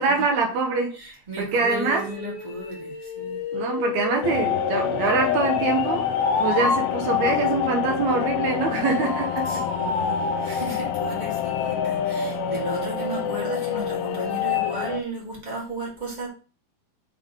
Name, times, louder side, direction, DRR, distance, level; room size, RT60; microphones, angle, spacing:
voice 1, 0.0-1.0 1.4-2.1 3.5-6.1 6.4-9.5, right 4 dB, 70° right, 1.8 m, -24 dB
voice 2, 0.9-3.4 9.5-16.3, right 2 dB, 15° right, 1.5 m, -35 dB
sound 1, 1.6-6.8 9.0-14.9, left 3 dB, 60° left, 2.6 m, -30 dB
sound 2, 4.2-15.0, left 13 dB, 80° left, 2.2 m, -27 dB
7.6 x 3.5 x 3.7 m
omnidirectional pair, 4.6 m